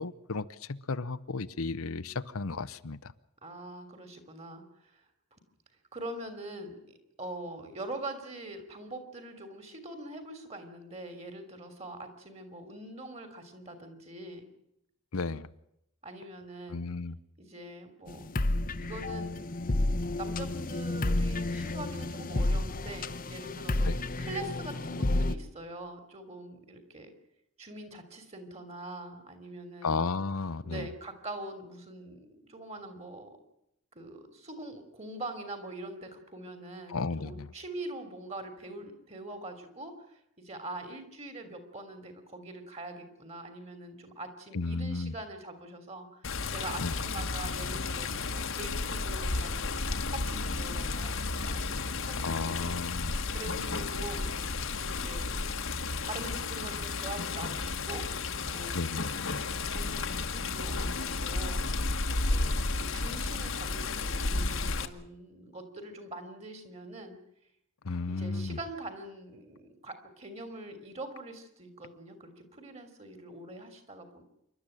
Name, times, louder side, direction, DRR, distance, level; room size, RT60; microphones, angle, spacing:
voice 1, 0.0-3.0 15.1-15.5 16.7-17.1 23.9-24.0 29.8-30.9 36.9-37.5 44.5-45.1 46.8-46.9 52.2-53.2 58.7-59.1 67.8-68.6, left 4 dB, 80° left, 13 dB, 0.8 m, -33 dB
voice 2, 3.4-5.4 5.9-6.8 7.2-14.5 16.0-16.9 17.4-19.3 20.2-27.1 27.6-30.0 30.6-33.4 33.9-54.3 54.8-55.4 56.0-61.6 62.1-67.2 68.0-74.2, right 2 dB, 30° right, 9 dB, 3.3 m, -43 dB
sound 1, 18.1-25.3, left 2 dB, 40° left, 0.9 m, -31 dB
Water, 46.2-64.9, left 3 dB, 65° left, 1.3 m, -32 dB
27.0 x 12.5 x 8.9 m, 0.80 s
head